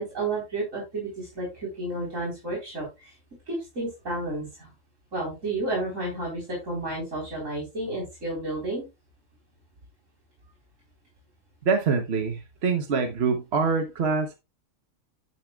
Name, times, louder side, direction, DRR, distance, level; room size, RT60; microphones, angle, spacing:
voice 1, 0.0-3.1 3.5-4.7 5.1-8.8, right 2 dB, 75° right, 4.3 m, -31 dB
voice 2, 11.6-14.3, right 5 dB, 55° right, 1.2 m, -25 dB
10.5 x 9.1 x 2.3 m
omnidirectional pair, 1.4 m